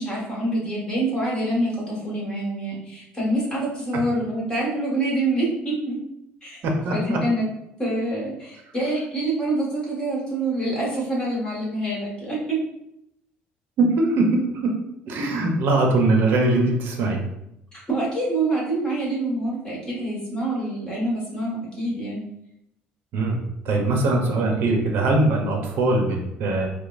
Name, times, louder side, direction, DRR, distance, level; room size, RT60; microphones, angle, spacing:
voice 1, 0.0-6.0 6.4-6.6 6.9-7.5 7.8-12.6 17.9-22.2, right 2 dB, 20° left, -5 dB, 1.5 m, -26 dB
voice 2, 6.6-7.2 13.8-14.7 15.1-17.2 23.1-23.4 23.6-26.7, right 2 dB, 60° right, 2 dB, 0.7 m, -21 dB
4.8 x 2.0 x 2.5 m, 0.82 s
cardioid pair, 115°, 4 cm